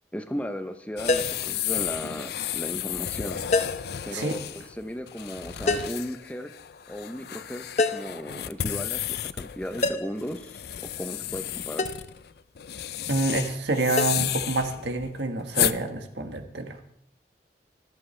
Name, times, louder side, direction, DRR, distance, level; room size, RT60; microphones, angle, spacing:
voice 1, 0.1-3.5 4.0-6.5 6.9-7.6 7.9-12.0, equal, 10° left, 8 dB, 0.6 m, -36 dB
sound 1, 1.0-15.8, left 11 dB, 60° left, 0.4 m, -33 dB
sound 2, 1.1-1.5 3.5-3.9 5.7-6.0 7.8-8.2 9.8-10.2 11.8-12.1 14.0-14.1, left 3 dB, 40° left, 0.8 m, -26 dB
voice 2, 13.1-16.8, right 2 dB, 80° right, 5 dB, 1.5 m, -27 dB
24.5 x 8.5 x 3.3 m, 0.72 s
head